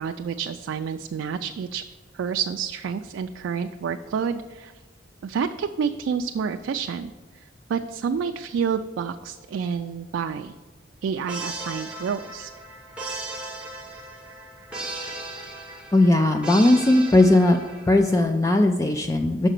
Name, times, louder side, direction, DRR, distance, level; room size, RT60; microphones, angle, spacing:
voice 1, 0.0-1.8 2.1-4.7 5.2-7.1 7.4-10.6 11.0-12.5, right 6 dB, 75° right, 7 dB, 0.3 m, -29 dB
sound 1, 11.3-18.1, right 2 dB, 5° right, 1.1 m, -36 dB
voice 2, 15.9-17.6 17.9-19.5, left 2 dB, 15° left, 5 dB, 0.3 m, -18 dB
6.5 x 4.9 x 6.6 m, 1.3 s
head